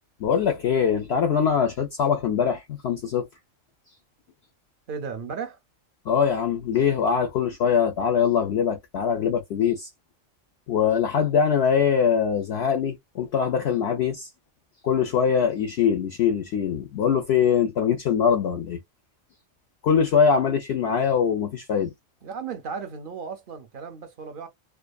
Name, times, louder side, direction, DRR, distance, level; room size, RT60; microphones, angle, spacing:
voice 1, 0.2-3.3 6.1-9.9 10.7-14.3 14.8-18.8 19.8-21.9, left 7 dB, 65° left, 0.7 m, -22 dB
voice 2, 4.9-5.6 22.2-24.5, right 6 dB, 55° right, 0.6 m, -35 dB
2.5 x 2.4 x 2.3 m
omnidirectional pair, 1.4 m